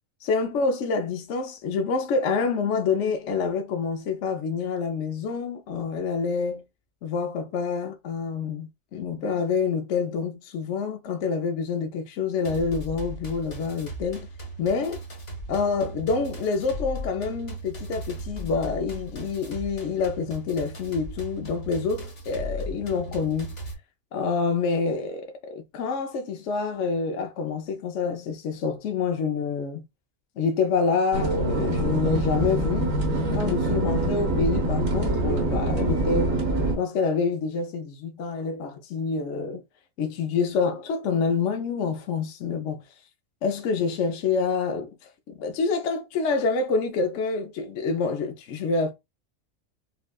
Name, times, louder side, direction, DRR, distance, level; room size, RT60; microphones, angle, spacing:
voice 1, 0.2-6.6 7.0-14.3 14.6-15.0 15.5-23.5 24.1-29.8 30.4-36.4 36.8-39.6 40.0-42.8 43.4-44.9 45.4-48.9, left 5 dB, 65° left, 0.9 m, -27 dB
sound 1, 12.4-23.7, right 1 dB, 50° left, 1.4 m, -37 dB
sound 2, 31.1-36.8, right 1 dB, 80° right, 1.4 m, -25 dB
5.3 x 2.2 x 2.2 m
omnidirectional pair, 1.4 m